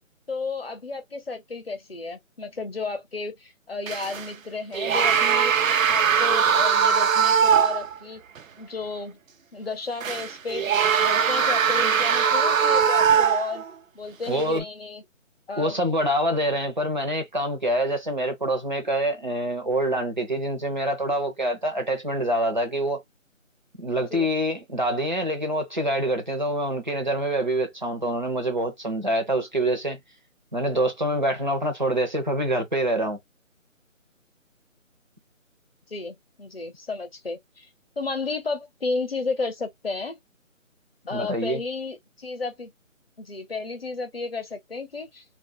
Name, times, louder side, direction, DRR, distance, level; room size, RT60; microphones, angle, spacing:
voice 1, 0.3-5.5 5.9-8.2 8.6-9.2 9.5-13.6 13.9-15.0 15.5-15.8 24.1-24.3 35.9-37.7 38.0-40.2 41.0-42.7 43.2-45.2, left 4 dB, 45° left, 0.8 m, -32 dB
sound 1, 3.9-4.3 4.7-8.0 8.4-8.5 10.0-13.7 14.4-14.6, right 7 dB, 80° right, 0.6 m, -21 dB
voice 2, 14.3-14.6 15.6-23.0 23.8-30.0 30.5-33.2 41.1-41.6, right 1 dB, 35° right, 0.7 m, -25 dB
2.4 x 2.1 x 3.7 m
figure-of-eight pair, 175°, 40 cm